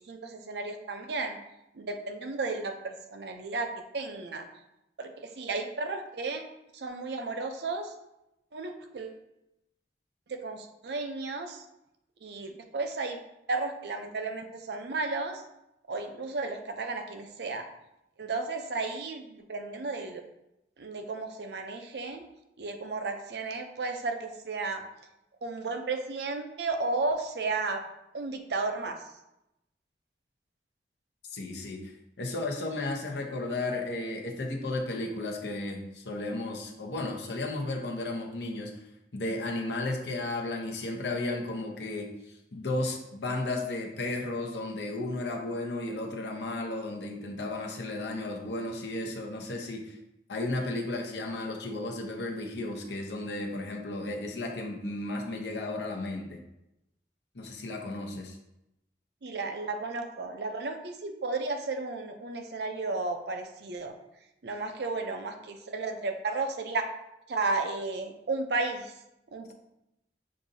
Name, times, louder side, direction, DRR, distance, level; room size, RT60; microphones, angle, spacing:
voice 1, 0.1-1.4 1.7-4.5 5.0-6.5 6.7-7.9 8.5-9.2 10.3-11.6 12.2-13.2 13.5-15.4 15.9-17.7 18.2-20.2 20.8-22.2 22.6-24.8 25.4-27.8 28.1-29.0 59.2-63.9 64.4-66.9 67.3-68.9 69.3-69.5, right 3 dB, 70° right, 5 dB, 0.5 m, -33 dB
voice 2, 31.3-38.7 39.1-42.1 42.5-50.0 50.3-56.4 57.3-58.4, left 2 dB, 75° left, 1 dB, 0.8 m, -34 dB
6.5 x 2.6 x 2.7 m, 0.87 s
head